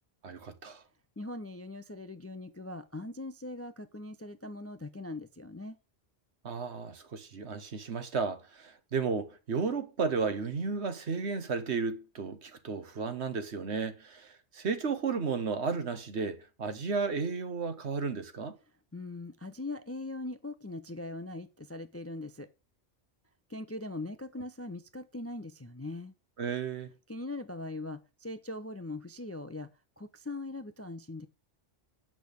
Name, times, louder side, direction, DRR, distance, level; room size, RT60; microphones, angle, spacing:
voice 1, 0.2-0.8 6.4-18.6 26.4-26.9, right 5 dB, 70° right, 1.5 m, -33 dB
voice 2, 1.2-5.8 18.9-22.5 23.5-26.1 27.1-29.7 30.0-31.3, left 2 dB, 20° left, 0.4 m, -41 dB
8.5 x 6.1 x 6.8 m
omnidirectional pair, 1.2 m